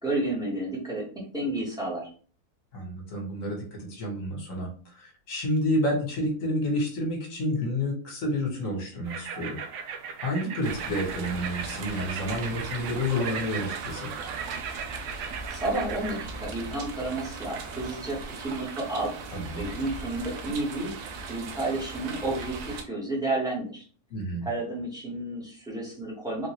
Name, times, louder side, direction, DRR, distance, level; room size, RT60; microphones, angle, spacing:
voice 1, 0.0-2.1 15.2-19.1 19.6-20.9 21.3-23.9 24.4-26.5, right 2 dB, 5° right, -4 dB, 1.0 m, -31 dB
voice 2, 2.7-9.6 10.2-14.1 19.3-19.7 24.1-24.5, left 1 dB, 60° left, 0 dB, 1.4 m, -30 dB
sound 1, 9.0-16.2, right 6 dB, 70° right, 0.7 m, -37 dB
sound 2, 10.6-22.8, right 4 dB, 85° right, 1.1 m, -39 dB
3.7 x 2.5 x 3.0 m, 0.42 s
omnidirectional pair, 1.6 m